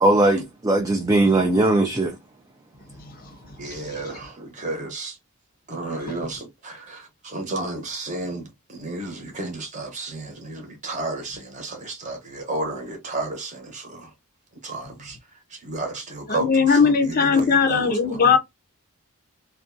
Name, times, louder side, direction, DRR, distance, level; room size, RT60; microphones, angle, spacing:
voice 1, 0.0-2.1, right 2 dB, 15° right, 0.3 m, -19 dB
voice 2, 3.6-5.2 5.7-14.1 14.6-15.2 15.5-18.3, right 2 dB, 35° right, 0.8 m, -32 dB
voice 3, 16.3-18.4, left 5 dB, 40° left, 0.5 m, -18 dB
2.5 x 2.2 x 2.4 m
head